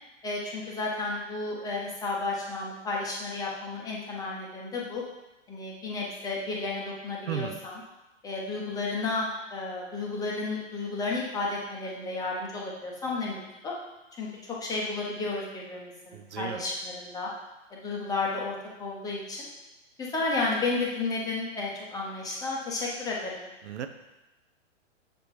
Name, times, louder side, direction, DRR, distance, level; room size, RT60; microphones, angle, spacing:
voice 1, 0.2-5.0 5.5-7.7 8.2-13.7 14.2-17.3 17.7-19.5 20.0-23.5, left 3 dB, 10° left, -4 dB, 0.7 m, -32 dB
voice 2, 7.3-7.6 16.1-16.7 23.6-23.9, right 9 dB, 65° right, 8 dB, 0.6 m, -34 dB
6.9 x 3.5 x 4.5 m, 0.99 s
hypercardioid pair, 140°, 38 cm